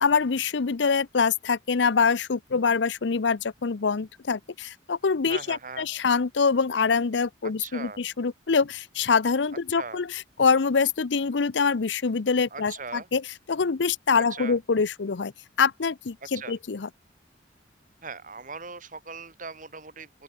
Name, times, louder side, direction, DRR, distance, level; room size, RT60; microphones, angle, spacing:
voice 1, 0.0-13.2 13.5-15.3 15.6-16.9, left 5 dB, 75° left, 0.6 m, -25 dB
voice 2, 5.3-5.9 7.4-8.0 9.8-10.0 12.5-13.1 14.2-14.6 16.3-16.6 18.0-20.1, right 4 dB, 45° right, 4.5 m, -39 dB
open air
head